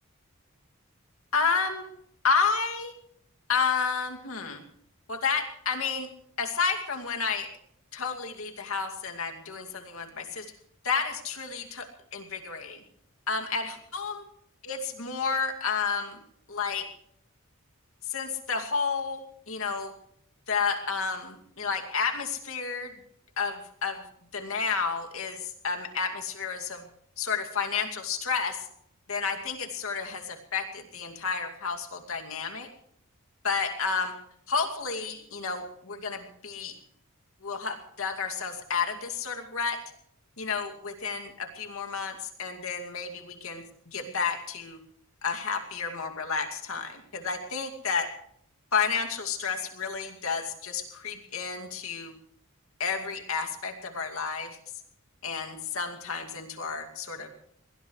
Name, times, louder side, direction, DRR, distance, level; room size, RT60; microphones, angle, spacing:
voice 1, 1.3-1.9 2.2-2.9 3.5-4.6 5.1-6.1 6.4-7.5 7.9-10.5 10.8-12.8 13.3-14.2 14.6-16.2 16.5-16.9 18.1-19.9 20.5-22.9 23.4-24.0 24.3-26.8 27.2-28.7 29.1-32.7 33.4-34.2 34.5-36.8 37.4-39.8 40.4-44.8 45.2-48.1 48.7-52.1 52.8-54.6 55.2-57.3, left 5 dB, 75° left, 4 dB, 2.5 m, -31 dB
22.5 x 19.5 x 3.3 m, 0.68 s
head